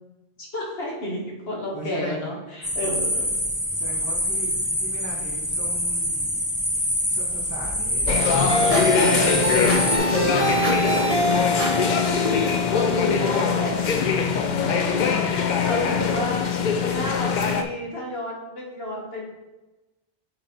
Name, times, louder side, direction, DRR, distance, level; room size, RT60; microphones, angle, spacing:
voice 1, 0.4-3.3 12.2-15.1 15.6-16.5 16.8-19.3, left 1 dB, 70° left, -3 dB, 1.6 m, -31 dB
voice 2, 1.7-2.3 2.8-3.0 3.7-4.5 4.8-6.3 7.0-8.1 8.8-12.3 14.0-14.3 15.2-15.4, right 1 dB, 15° right, -9 dB, 2.3 m, -39 dB
sound 1, 2.6-10.0, equal, 20° left, 1.0 m, -25 dB
sound 2, 8.1-17.6, left 6 dB, 55° left, 0.6 m, -22 dB
sound 3, 8.5-14.5, right 1 dB, 35° right, 1.2 m, -26 dB
6.6 x 4.2 x 4.2 m, 1.1 s
omnidirectional pair, 1.1 m